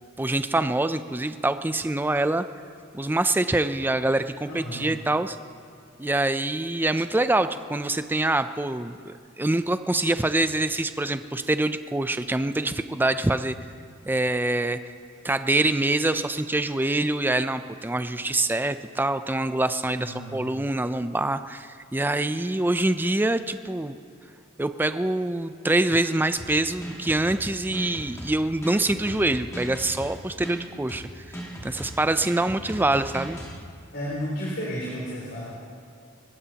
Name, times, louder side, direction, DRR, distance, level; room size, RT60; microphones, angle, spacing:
voice 1, 0.2-2.4 2.9-5.4 6.0-13.6 14.1-14.8 15.2-24.0 24.6-31.1 31.6-33.4, right 2 dB, 10° right, 11 dB, 0.4 m, -25 dB
voice 2, 4.5-4.9 20.0-20.4 31.3-31.4 33.9-35.4, equal, 60° left, -6 dB, 3.5 m, -32 dB
sound 1, 26.4-33.6, right 1 dB, 15° left, 1.9 m, -38 dB
28.5 x 15.0 x 2.9 m, 2.3 s
head